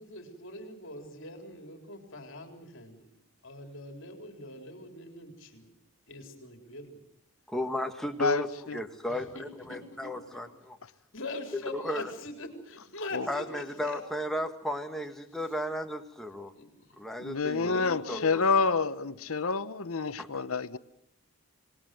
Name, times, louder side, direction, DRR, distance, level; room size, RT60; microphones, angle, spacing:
voice 1, 0.0-3.1 3.4-5.7 6.1-7.0 9.1-10.5 11.1-14.0 15.3-15.5 16.5-17.0 17.6-18.8, left 1 dB, 60° left, 5 dB, 3.8 m, -43 dB
voice 2, 7.5-8.5 8.7-10.8 11.7-12.1 13.3-16.5 17.0-18.2 20.2-20.4, left 1 dB, ahead, 4 dB, 1.5 m, -34 dB
voice 3, 8.2-8.8 13.1-13.3 17.2-20.8, left 4 dB, 75° left, 13 dB, 0.9 m, -28 dB
26.0 x 19.5 x 7.7 m, 0.78 s
head